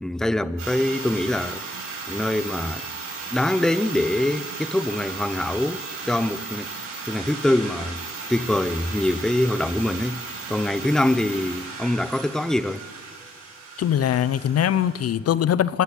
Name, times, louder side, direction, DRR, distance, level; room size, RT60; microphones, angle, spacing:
voice 1, 0.0-1.6 2.1-2.8 3.3-6.7 7.1-8.0 8.3-10.2 10.5-12.8, left 1 dB, ahead, 0.8 m, -24 dB
sound 1, 0.6-15.1, right 4 dB, 65° right, 7.8 m, -35 dB
voice 2, 13.8-15.8, left 10 dB, 55° left, 0.7 m, -21 dB
26.5 x 20.0 x 8.4 m
cardioid pair, 90°, 30 cm